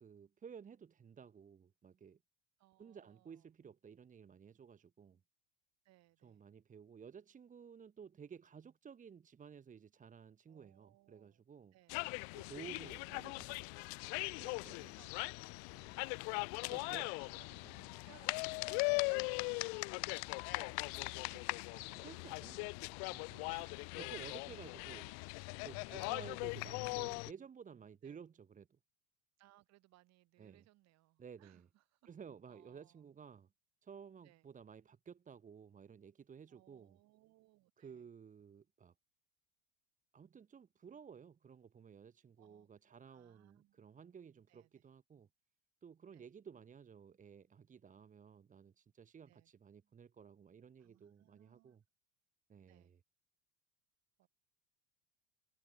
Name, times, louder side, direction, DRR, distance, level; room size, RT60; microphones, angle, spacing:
voice 1, 0.0-2.2 2.8-5.2 6.2-11.7 12.3-13.6 14.4-14.9 15.7-16.0 16.6-17.1 17.6-17.8 20.6-23.5 24.0-25.2 25.6-28.8 30.4-30.7 31.2-31.7 32.1-33.5 33.8-37.0 37.8-38.9 40.1-45.3 45.8-51.8 52.5-53.0, right 7 dB, 20° right, 1.6 m, -55 dB
voice 2, 2.6-3.5 5.9-6.4 10.5-11.4 11.7-12.5 12.8-12.9 14.5-15.3 16.1-16.7 17.0-19.3 23.5-24.0 25.9-26.1 28.0-28.2 29.4-32.1 32.5-33.0 34.2-34.5 36.5-38.1 42.4-43.9 44.5-44.8 46.1-46.3 49.3-49.5 50.8-51.8 52.7-52.9 54.2-54.3, right 17 dB, 45° right, 5.2 m, -67 dB
sound 1, 11.9-27.3, left 40 dB or more, 35° left, 0.4 m, -40 dB
figure-of-eight pair, 75°, 38 cm